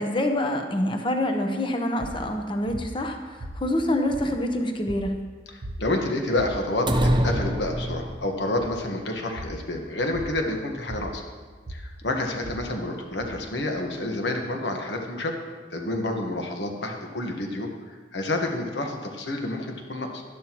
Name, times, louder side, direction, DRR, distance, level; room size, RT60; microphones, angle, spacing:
voice 1, 0.0-5.1, left 1 dB, 30° left, 4 dB, 0.9 m, -26 dB
sound 1, 2.0-14.0, right 1 dB, 70° right, 0.8 m, -41 dB
voice 2, 5.5-11.2 11.7-15.4 15.7-20.2, left 2 dB, 70° left, 2 dB, 1.3 m, -29 dB
sound 2, 6.9-8.5, equal, 25° right, 0.6 m, -24 dB
12.0 x 11.0 x 3.0 m, 1.4 s
head